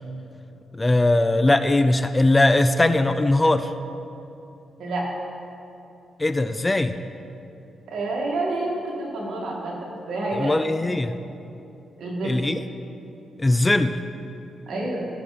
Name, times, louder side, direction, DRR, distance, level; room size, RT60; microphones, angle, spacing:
voice 1, 0.7-3.7 6.2-7.0 10.3-11.2 12.2-12.6 13.4-14.0, left 2 dB, 20° left, 10 dB, 0.4 m, -20 dB
voice 2, 4.8-5.1 7.9-10.6 12.0-12.4 14.7-15.1, right 2 dB, 70° right, -3 dB, 2.3 m, -28 dB
15.5 x 6.7 x 4.3 m, 2.8 s
cardioid pair, 70°, 0 cm